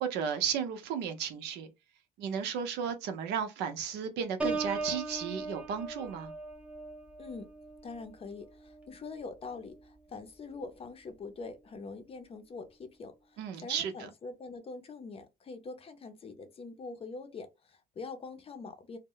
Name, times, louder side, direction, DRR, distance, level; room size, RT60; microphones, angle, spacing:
voice 1, 0.0-1.7 2.2-6.3 13.4-14.1, right 7 dB, 85° right, 0.6 m, -34 dB
Piano, 4.4-10.0 10.5-10.8, right 3 dB, 5° right, 0.6 m, -39 dB
voice 2, 7.2-7.5 7.8-19.0, left 4 dB, 35° left, 0.5 m, -44 dB
2.1 x 2.0 x 3.7 m
cardioid pair, 110°, 17 cm